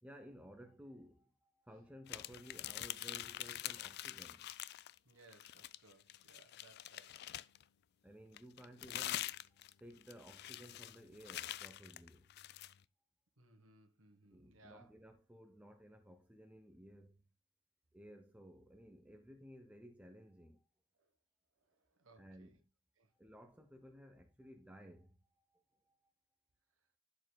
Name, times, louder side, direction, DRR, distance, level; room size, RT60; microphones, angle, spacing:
voice 1, 0.0-4.5 8.0-12.3 14.3-17.3 17.9-20.7 22.2-22.7 23.1-26.1, equal, 5° right, 0.6 m, -57 dB
sound 1, 2.1-5.0 5.3-7.6 8.3-12.7, left 13 dB, 50° left, 0.3 m, -45 dB
voice 2, 5.0-7.1 13.4-14.9 21.0-21.1 21.7-22.5 23.0-23.1, right 2 dB, 65° right, 1.3 m, -64 dB
11.5 x 5.1 x 2.2 m
head